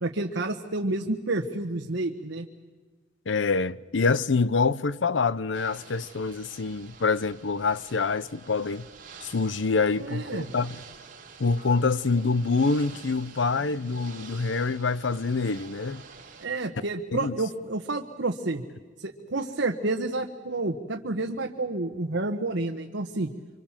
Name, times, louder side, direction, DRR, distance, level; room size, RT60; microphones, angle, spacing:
voice 1, 0.0-2.5 10.0-10.5 16.4-18.6 19.0-23.3, right 2 dB, 80° right, 1.3 m, -30 dB
voice 2, 3.3-8.9 9.2-10.8 11.4-16.0 17.1-17.4, left 4 dB, 80° left, 0.7 m, -26 dB
Ocean / Boat Water vehicle, 5.5-16.5, right 5 dB, 45° right, 3.5 m, -48 dB
sound 1, 11.6-14.4 14.7-14.9 15.6-16.0, right 1 dB, 50° left, 7.0 m, -54 dB
26.0 x 26.0 x 7.4 m
head